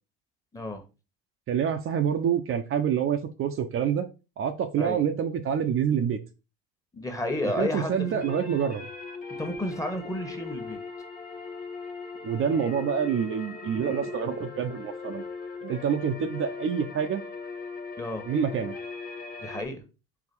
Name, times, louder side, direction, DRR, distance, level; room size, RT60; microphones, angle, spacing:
voice 1, 0.5-0.8 4.8-5.0 6.9-8.3 9.3-10.8 18.0-18.3 19.4-19.8, left 1 dB, 10° left, 5 dB, 1.5 m, -32 dB
voice 2, 1.5-4.1 4.4-6.2 7.4-8.9 12.2-15.2 15.6-17.2 18.3-18.7, right 8 dB, 45° right, 6 dB, 0.9 m, -27 dB
sound 1, 7.2-19.6, left 4 dB, 30° left, 1.5 m, -39 dB
4.9 x 3.6 x 5.4 m, 0.30 s
supercardioid pair, 100°, 30 cm